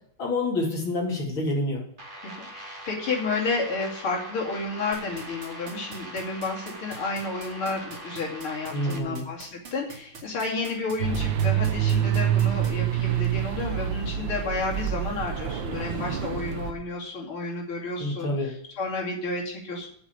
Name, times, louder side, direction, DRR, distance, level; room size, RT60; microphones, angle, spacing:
voice 1, 0.2-1.8 8.7-9.2 18.0-18.5, left 2 dB, 70° left, -2 dB, 3.9 m, -27 dB
sound 1, 2.0-9.0, right 1 dB, 25° right, 1.8 m, -42 dB
voice 2, 2.2-19.9, left 3 dB, 90° left, -1 dB, 3.7 m, -31 dB
sound 2, 4.9-12.7, right 5 dB, 85° right, 3.3 m, -43 dB
sound 3, 11.0-16.7, right 10 dB, 65° right, 1.7 m, -26 dB
8.2 x 7.4 x 8.2 m, 0.67 s
omnidirectional pair, 2.3 m